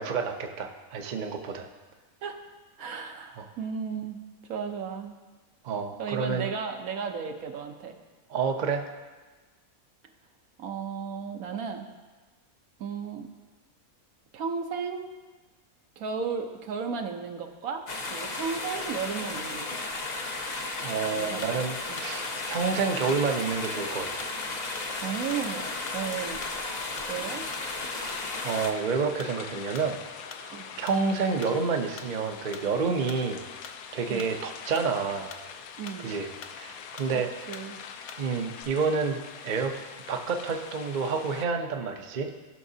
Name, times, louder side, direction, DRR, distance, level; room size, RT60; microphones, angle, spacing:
voice 1, 0.0-1.7 3.4-3.5 5.6-6.5 8.3-8.8 20.8-24.3 28.4-30.0 30.2-33.4 33.9-35.3 36.0-36.3 36.5-37.3 38.2-39.7 40.1-42.3, right 5 dB, 45° right, 4 dB, 0.6 m, -29 dB
voice 2, 2.8-4.2 4.5-5.1 6.0-8.0 10.6-11.9 12.8-13.3 14.3-15.1 16.0-17.8 18.1-19.7 21.2-21.6 21.9-22.0 25.0-26.4 27.1-27.4 30.5-30.7 34.1-34.3 35.8-36.1 37.1-37.2 37.5-37.8, right 6 dB, 75° right, 5 dB, 1.2 m, -34 dB
sound 1, 17.9-28.7, left 3 dB, 40° left, 0.7 m, -34 dB
sound 2, 21.4-21.7 22.0-22.2 22.5-23.2 23.6-23.9 24.2-24.4 24.8-24.9 25.3-25.5 25.9-26.1 26.4-26.6 27.0-27.2 27.5-27.8 28.1-28.3 28.6-28.8 29.2-29.4 29.7-29.9 30.3-30.5 30.9-31.1 31.4-31.6 32.0-32.2 32.5-32.7 33.1-33.3 33.6-33.8 34.2-34.9 35.3-35.5 35.9-36.0 36.4-36.7 37.0-37.2 37.5-37.7 38.1-38.3 38.5-38.6, left 5 dB, 65° left, 0.9 m, -46 dB
sound 3, 21.9-41.4, left 7 dB, 80° left, 1.1 m, -44 dB
15.5 x 5.8 x 2.7 m, 1.3 s
omnidirectional pair, 1.5 m